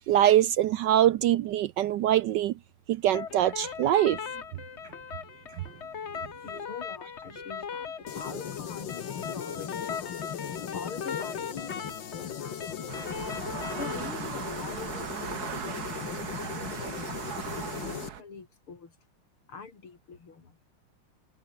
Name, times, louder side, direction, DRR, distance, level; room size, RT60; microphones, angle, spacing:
voice 1, 0.1-2.5 2.9-4.2, right 12 dB, 75° right, 1.1 m, -23 dB
sound 1, 3.1-14.1, left 6 dB, 40° left, 1.2 m, -39 dB
voice 2, 6.4-10.3 10.7-13.1 13.8-17.2 17.7-19.0 19.5-20.6, left 5 dB, 85° left, 4.4 m, -45 dB
sound 2, 8.1-18.1, left 8 dB, 65° left, 2.2 m, -38 dB
sound 3, 12.9-18.2, right 9 dB, 50° right, 1.6 m, -38 dB
omnidirectional pair, 2.3 m